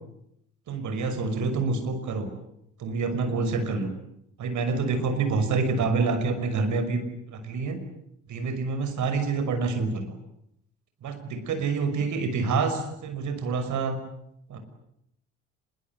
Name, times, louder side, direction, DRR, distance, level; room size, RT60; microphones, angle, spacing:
voice 1, 0.7-2.3 2.8-3.9 4.4-7.0 7.3-7.8 8.3-10.2 11.0-14.0 14.5-14.6, right 4 dB, 45° right, 8 dB, 6.1 m, -27 dB
26.0 x 22.5 x 9.6 m, 0.77 s
figure-of-eight pair, 55°, 39 cm